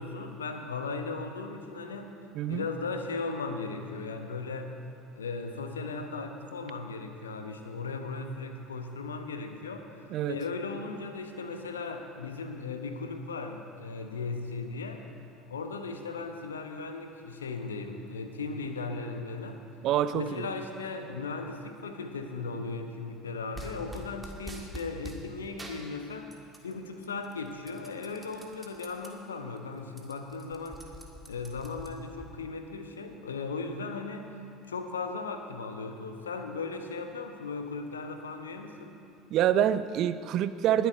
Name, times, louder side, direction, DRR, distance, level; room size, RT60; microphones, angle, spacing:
voice 1, 0.0-2.1 2.5-4.7 5.1-15.0 15.5-19.6 20.1-26.3 26.6-30.8 31.3-34.2 34.7-39.0, left 4 dB, 75° left, 6 dB, 1.0 m, -37 dB
voice 2, 2.3-2.6 10.1-10.4 19.8-20.5 39.3-40.9, right 10 dB, 50° right, 13 dB, 0.5 m, -26 dB
sound 1, 23.5-25.2 25.6-26.7 27.0-29.1 29.5-29.6 29.9-32.3, right 1 dB, 15° right, 1.8 m, -45 dB
20.5 x 8.0 x 5.1 m, 2.5 s
figure-of-eight pair, 65°, 0 cm